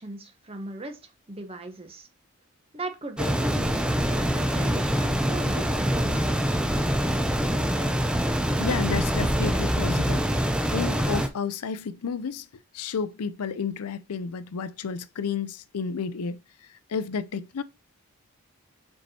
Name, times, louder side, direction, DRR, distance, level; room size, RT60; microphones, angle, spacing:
voice 1, 0.0-2.1 2.7-6.2, right 2 dB, 25° right, 1.0 m, -38 dB
sound 1, 3.2-11.3, equal, 5° right, 0.6 m, -25 dB
voice 2, 8.6-12.5 12.7-16.4 16.9-17.6, left 6 dB, 90° left, 0.5 m, -31 dB
5.2 x 4.7 x 4.3 m
head